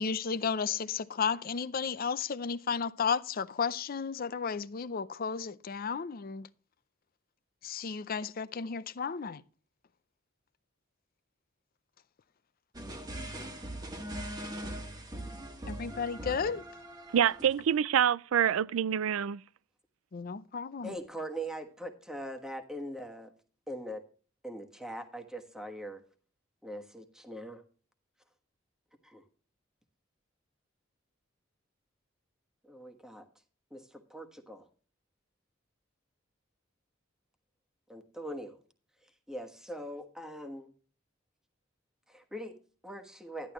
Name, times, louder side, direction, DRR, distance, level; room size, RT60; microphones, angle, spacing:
voice 1, 0.0-6.5 7.6-9.4 15.7-16.6 20.1-20.9, left 6 dB, 45° left, 0.5 m, -33 dB
sound 1, 12.7-17.7, right 1 dB, 20° right, 1.4 m, -41 dB
voice 2, 17.1-19.4, right 9 dB, 85° right, 0.4 m, -26 dB
voice 3, 20.8-23.3 23.7-24.0 24.4-26.0 26.6-27.6 29.0-29.2 32.7-33.2 33.7-34.6 37.9-38.6 39.3-40.7 42.1-43.5, right 1 dB, 5° right, 1.4 m, -41 dB
11.5 x 11.0 x 3.0 m
head